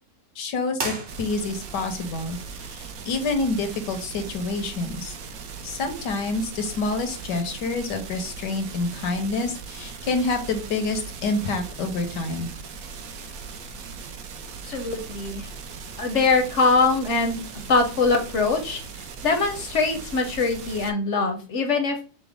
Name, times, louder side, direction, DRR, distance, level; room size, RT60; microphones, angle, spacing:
voice 1, 0.3-5.2 5.6-12.5, left 3 dB, 85° left, 5 dB, 1.5 m, -28 dB
sound 1, 0.7-1.8, right 3 dB, 40° right, 1.0 m, -33 dB
sound 2, 1.1-20.9, right 5 dB, 65° right, 1.0 m, -39 dB
voice 2, 14.7-15.5 16.0-17.4 17.7-18.8 19.2-22.0, left 4 dB, 60° left, 5 dB, 0.8 m, -22 dB
6.0 x 2.1 x 3.4 m, 0.39 s
omnidirectional pair, 1.8 m